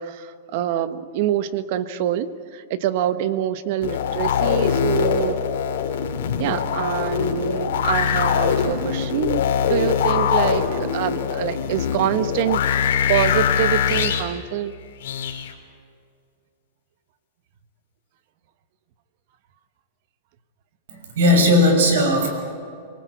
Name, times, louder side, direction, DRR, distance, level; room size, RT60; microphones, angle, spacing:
voice 1, 0.0-5.4 6.4-14.7, right 11 dB, 50° right, 12 dB, 1.2 m, -25 dB
sound 1, 3.8-14.2 15.0-15.5, left 7 dB, 75° left, 3.2 m, -22 dB
voice 2, 20.9-22.3, left 1 dB, 80° right, 5 dB, 6.2 m, -17 dB
25.5 x 19.0 x 8.3 m, 2.3 s
supercardioid pair, 155°, 0 cm